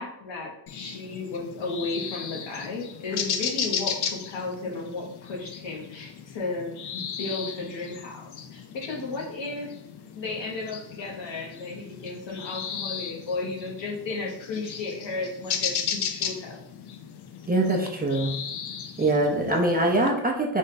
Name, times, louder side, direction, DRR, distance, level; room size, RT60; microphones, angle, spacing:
voice 1, 0.0-9.7 10.1-16.6 19.3-19.9, left 3 dB, 80° left, 0 dB, 1.0 m, -34 dB
sound 1, 0.7-20.1, left 7 dB, 65° left, 0.5 m, -35 dB
voice 2, 17.5-18.3 19.0-20.6, right 2 dB, 20° right, 0 dB, 0.5 m, -23 dB
3.5 x 2.1 x 4.1 m, 0.76 s
wide cardioid pair, 105°, 44 cm